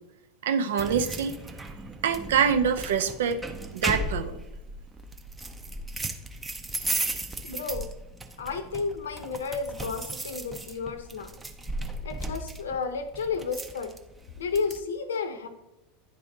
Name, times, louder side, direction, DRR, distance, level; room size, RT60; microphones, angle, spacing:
voice 1, 0.4-1.4 2.0-3.4 3.7-4.4, right 7 dB, 65° right, 9 dB, 0.5 m, -25 dB
sound 1, 0.8-14.8, right 2 dB, 15° right, 0.6 m, -36 dB
voice 2, 7.4-7.9 8.4-11.3 12.0-13.9 14.4-15.5, left 5 dB, 70° left, 10 dB, 0.6 m, -32 dB
10.0 x 3.4 x 3.8 m, 0.97 s
figure-of-eight pair, 80°, 0 cm